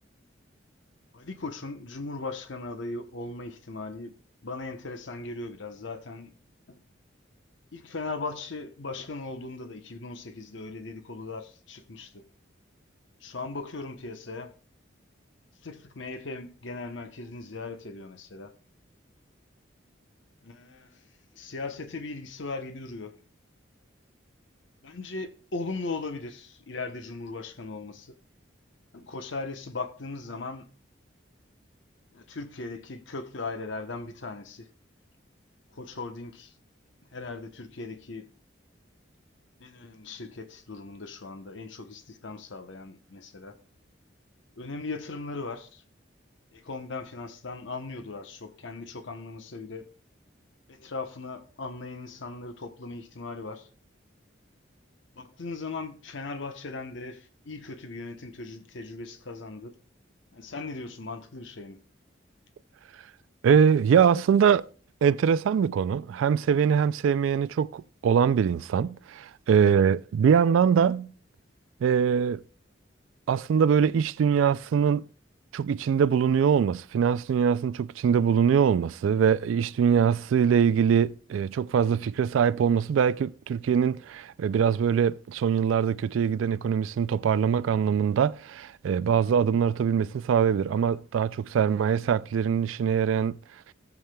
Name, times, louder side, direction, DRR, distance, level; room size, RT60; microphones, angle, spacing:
voice 1, 1.1-4.1 4.4-6.3 6.7-6.8 7.7-12.2 13.2-14.5 15.6-18.5 20.4-21.1 21.3-23.2 24.8-28.1 28.9-30.7 32.1-34.7 35.7-36.5 37.1-38.3 39.6-43.6 44.6-45.8 46.5-49.9 50.7-53.7 55.1-59.8 60.3-61.8, left 3 dB, 75° left, 0.9 m, -38 dB
voice 2, 63.4-64.6 65.0-71.1 71.8-72.4 73.3-75.0 75.5-93.4, right 7 dB, 85° right, 0.3 m, -23 dB
18.0 x 7.1 x 2.2 m
head